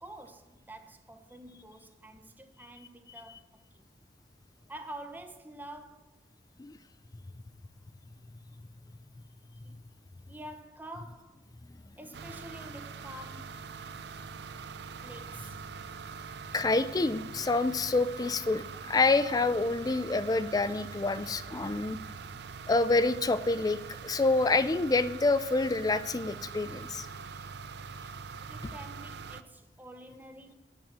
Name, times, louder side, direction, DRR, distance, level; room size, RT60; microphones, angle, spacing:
voice 1, 0.0-3.8 4.7-6.2 9.6-9.8 10.3-11.4 12.0-13.7 15.0-15.6 28.5-30.5, right 1 dB, 10° right, 1.0 m, -47 dB
sound 1, 12.1-29.4, right 5 dB, 65° right, 0.5 m, -43 dB
voice 2, 16.5-22.0 22.7-27.1, left 3 dB, 20° left, 0.4 m, -27 dB
9.1 x 8.3 x 7.4 m
head